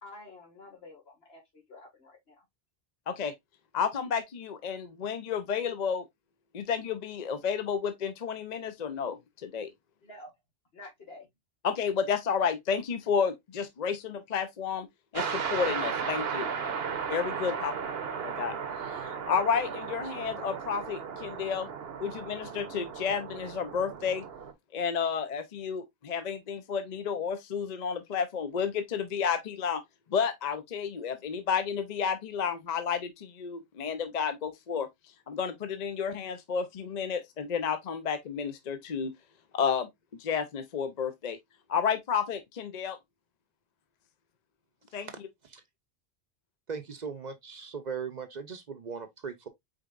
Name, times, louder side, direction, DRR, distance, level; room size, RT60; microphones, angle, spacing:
voice 1, 0.0-2.4 10.0-10.3 10.7-11.3 16.8-16.9 17.3-17.9, left 2 dB, 75° left, 2.1 m, -50 dB
voice 2, 3.7-6.1 6.5-9.7 11.6-14.9 15.1-16.5 17.1-17.7 18.2-18.6 18.8-21.7 22.0-24.2 24.7-29.8 30.1-34.9 35.3-39.1 39.5-39.9 40.2-41.4 41.7-43.0 44.9-45.1, left 6 dB, 50° left, 0.7 m, -31 dB
sound 1, 15.1-24.5, right 6 dB, 75° right, 1.1 m, -35 dB
voice 3, 46.7-49.5, right 6 dB, 50° right, 0.7 m, -38 dB
5.1 x 4.1 x 2.4 m
omnidirectional pair, 1.0 m